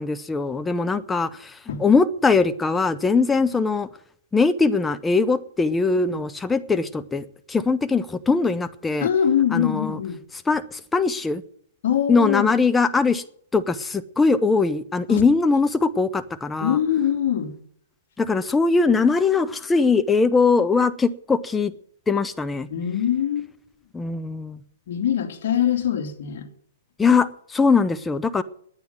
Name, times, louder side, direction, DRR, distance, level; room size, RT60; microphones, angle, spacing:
voice 1, 0.0-3.9 4.3-9.1 9.5-10.0 10.5-11.4 12.1-13.2 13.5-16.8 18.2-21.7 22.1-22.7 23.9-24.6 27.0-28.4, left 4 dB, 10° left, 0.7 m, -21 dB
voice 2, 9.0-10.2 11.8-12.6 15.1-15.2 16.6-17.5 22.7-23.5 24.9-26.5, left 9 dB, 60° left, 2.7 m, -23 dB
10.5 x 9.4 x 9.6 m
hypercardioid pair, 120°, 0 cm